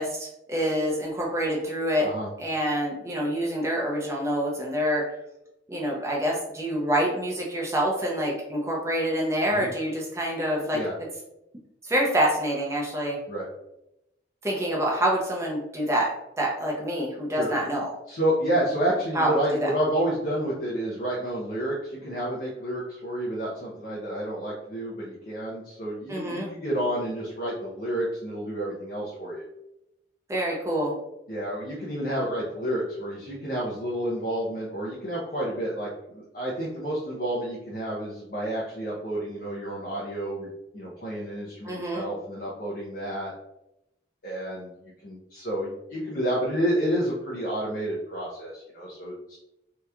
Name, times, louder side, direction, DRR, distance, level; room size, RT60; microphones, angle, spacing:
voice 1, 0.0-2.1 2.4-5.0 5.7-10.8 11.8-13.2 14.4-16.1 16.4-17.9 19.1-19.7 26.1-26.5 30.3-30.9 41.6-42.1, equal, 15° right, -2 dB, 0.5 m, -26 dB
voice 2, 18.1-29.5 31.3-40.5 40.7-43.3 44.2-44.7 45.0-49.4, right 1 dB, 50° left, -6 dB, 0.6 m, -30 dB
2.9 x 2.3 x 3.3 m, 0.87 s
head